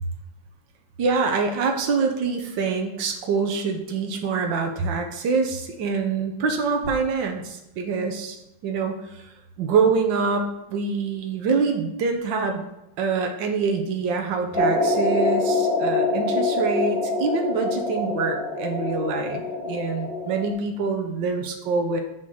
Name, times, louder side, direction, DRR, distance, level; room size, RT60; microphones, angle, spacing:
voice 1, 1.0-8.4 8.6-9.3 9.6-12.6 13.0-22.0, right 4 dB, 75° right, 4 dB, 1.7 m, -25 dB
sound 1, 14.5-20.5, left 2 dB, ahead, 1.3 m, -25 dB
8.1 x 4.0 x 6.5 m, 0.91 s
omnidirectional pair, 2.1 m